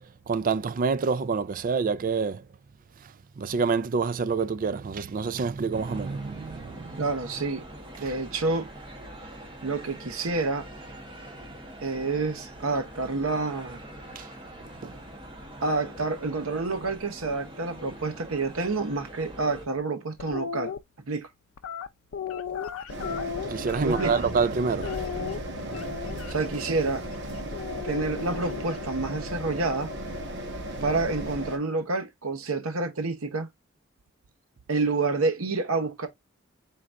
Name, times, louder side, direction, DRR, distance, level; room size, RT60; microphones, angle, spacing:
voice 1, 0.0-2.5 3.0-7.0 8.0-8.1 14.2-14.3 14.6-15.0 23.5-25.0, right 5 dB, 40° right, 0.4 m, -28 dB
sound 1, 5.7-19.7, right 1 dB, 25° right, 1.3 m, -44 dB
voice 2, 7.0-7.6 8.0-8.7 9.6-10.7 11.8-13.8 15.6-20.7 21.1-21.3 23.8-24.2 26.3-27.0 27.8-29.9 30.8-33.5 34.7-36.1, right 3 dB, 90° right, 1.0 m, -28 dB
sound 2, 20.2-20.8 21.6-24.5 24.8-26.3 27.5-28.9, left 7 dB, 80° left, 0.5 m, -35 dB
sound 3, 22.9-31.6, equal, 60° right, 1.1 m, -35 dB
4.5 x 3.9 x 2.5 m
head